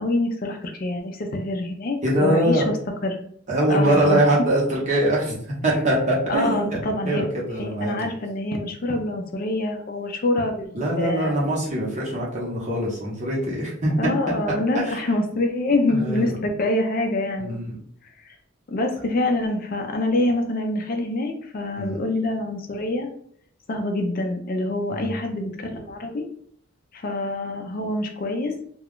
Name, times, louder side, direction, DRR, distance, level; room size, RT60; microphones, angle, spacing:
voice 1, 0.0-2.8 3.0-3.2 3.7-4.2 6.3-7.3 7.6-11.3 14.0-17.6 18.2-18.3 18.7-23.1 23.7-26.2 26.9-28.5, left 2 dB, 45° left, 4 dB, 0.4 m, -25 dB
voice 2, 2.0-2.6 3.5-5.4 5.6-6.8 7.0-7.9 10.7-14.1 14.7-15.1 15.9-16.3 17.4-17.8 21.8-22.0 24.9-25.2, right 1 dB, 35° right, -5 dB, 0.9 m, -23 dB
2.3 x 2.2 x 3.5 m, 0.63 s
head